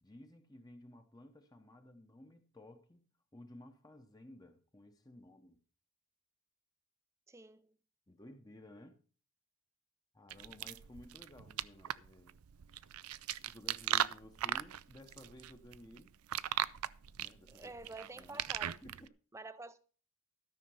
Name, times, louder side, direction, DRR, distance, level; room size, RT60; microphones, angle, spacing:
voice 1, 0.0-3.0 3.3-5.6 8.1-9.0 10.1-12.4 13.4-16.1 17.2-17.8 18.1-19.1, left 1 dB, 15° left, 0.9 m, -56 dB
voice 2, 7.3-7.7 17.5-18.8 19.3-19.8, right 3 dB, 15° right, 0.5 m, -49 dB
sound 1, 10.3-19.1, right 11 dB, 80° right, 0.5 m, -38 dB
13.0 x 6.6 x 5.5 m
head